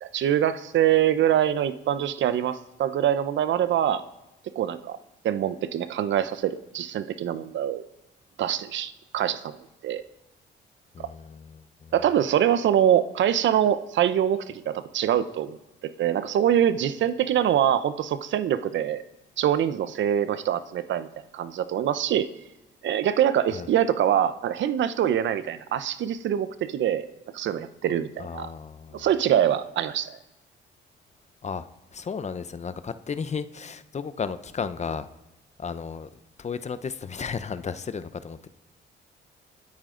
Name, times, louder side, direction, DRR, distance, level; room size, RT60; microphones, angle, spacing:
voice 1, 0.0-4.0 4.6-5.0 5.2-7.8 8.4-9.5 9.8-10.0 11.0-11.1 11.9-15.6 16.0-19.0 19.4-21.1 21.3-22.3 22.8-27.1 27.3-28.5 28.9-30.2, right 10 dB, 70° right, 0.8 m, -24 dB
voice 2, 10.9-11.9 23.5-23.7 28.2-29.1 31.4-31.7 31.9-35.1 35.6-36.1 36.4-38.5, left 6 dB, 35° left, 0.8 m, -34 dB
25.0 x 8.8 x 3.9 m
cardioid pair, 90°, 20 cm